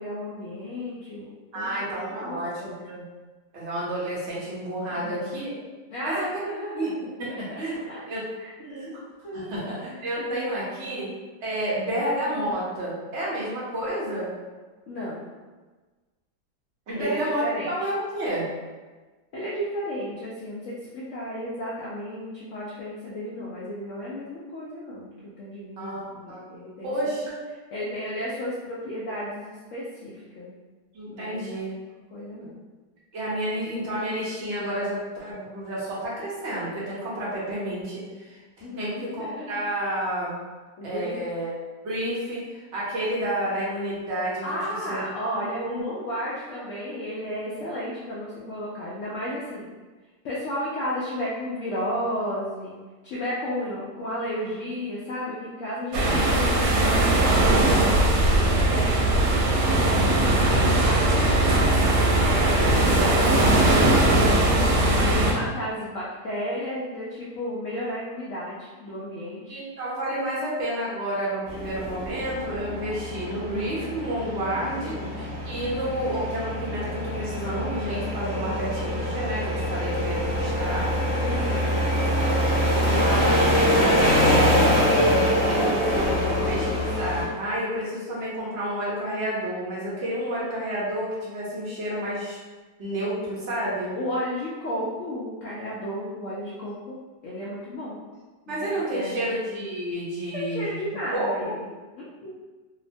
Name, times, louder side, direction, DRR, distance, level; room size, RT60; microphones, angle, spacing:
voice 1, 0.0-2.8 4.8-5.4 5.9-7.0 7.7-8.0 8.4-8.5 9.2-9.6 10.2-11.0 14.9-15.3 17.0-17.9 19.3-25.1 25.4-26.9 27.7-30.5 31.1-31.7 32.1-32.6 38.6-39.6 40.8-41.2 44.4-49.7 50.2-52.7 53.0-59.9 60.4-61.9 62.4-64.3 64.9-69.6 74.8-75.2 78.4-78.8 81.1-81.8 83.0-84.3 93.9-97.0 97.2-98.0 98.5-98.7 98.9-99.3 100.3-102.3, equal, 75° left, -6 dB, 0.7 m, -33 dB
voice 2, 1.5-3.0 3.5-5.5 6.0-6.9 7.2-7.8 8.1-8.3 8.6-9.0 9.3-11.1 11.4-14.3 16.9-18.5 25.8-26.4 26.8-27.4 30.9-31.7 33.1-38.4 38.8-40.3 40.8-41.5 41.8-44.6 44.9-45.0 45.3-45.9 69.5-80.9 82.9-83.4 83.8-84.7 85.3-92.4 92.8-93.9 98.5-100.8 101.1-101.5, right 1 dB, 55° right, -7 dB, 0.9 m, -30 dB
sound 1, 55.9-65.3, right 1 dB, 85° right, 1.2 m, -20 dB
sound 2, 71.5-87.2, equal, 20° left, 1.0 m, -24 dB
2.8 x 2.1 x 2.5 m, 1.3 s
omnidirectional pair, 1.8 m